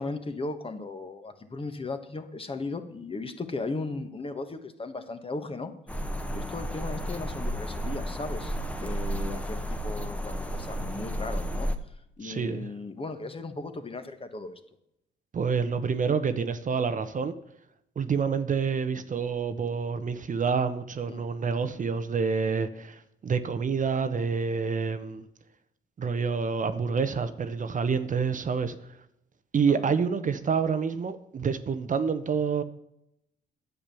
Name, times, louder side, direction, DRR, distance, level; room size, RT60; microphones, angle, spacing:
voice 1, 0.0-5.7 6.3-8.5 8.8-11.7 12.2-14.6 21.1-21.2 29.7-29.9, left 3 dB, 25° left, 1.4 m, -36 dB
sound 1, 5.9-11.8, equal, 5° left, 1.1 m, -32 dB
voice 2, 12.2-12.7 15.3-17.3 18.0-25.2 26.0-28.8 29.5-32.6, right 5 dB, 40° right, 0.9 m, -28 dB
10.5 x 7.4 x 6.9 m
cardioid pair, 90°, 20 cm